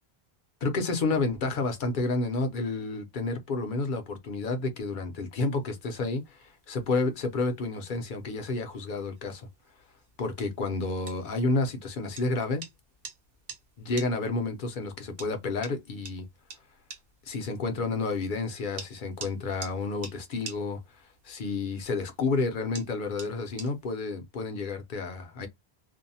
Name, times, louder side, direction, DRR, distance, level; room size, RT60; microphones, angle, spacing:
voice 1, 0.6-9.5 10.2-12.6 13.8-16.3 17.3-25.5, left 3 dB, 55° left, 0.7 m, -30 dB
sound 1, 5.4-24.0, right 5 dB, 65° right, 0.9 m, -49 dB
2.6 x 2.1 x 2.6 m
omnidirectional pair, 1.1 m